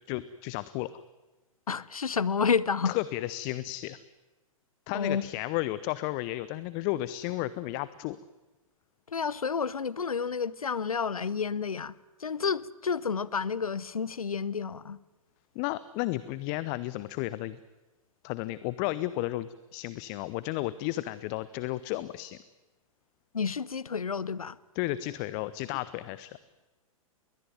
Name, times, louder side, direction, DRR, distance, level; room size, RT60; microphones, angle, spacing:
voice 1, 0.1-0.9 2.8-4.0 4.9-8.2 15.5-17.6 18.2-22.4 24.7-26.4, left 17 dB, 35° left, 0.8 m, -33 dB
voice 2, 1.7-3.0 4.9-5.2 9.1-11.9 12.2-15.0 23.3-24.6, left 6 dB, 80° left, 0.8 m, -30 dB
21.5 x 19.0 x 9.4 m
figure-of-eight pair, 110°, 18 cm